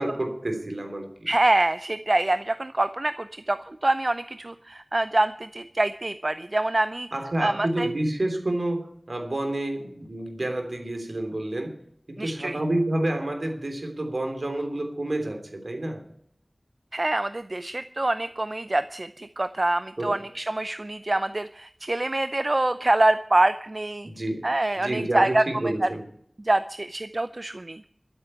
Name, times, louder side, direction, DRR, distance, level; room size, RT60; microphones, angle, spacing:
voice 1, 0.0-1.3 7.1-11.8 12.1-16.0 20.0-20.2 24.0-24.5 24.8-26.1, right 1 dB, 70° right, 5 dB, 3.2 m, -29 dB
voice 2, 1.3-7.1 7.4-7.9 12.2-12.6 16.9-24.1 24.4-25.4 25.8-25.9 26.4-27.8, right 2 dB, 50° right, 11 dB, 0.6 m, -25 dB
13.0 x 8.0 x 8.9 m, 0.65 s
wide cardioid pair, 50°, 0 cm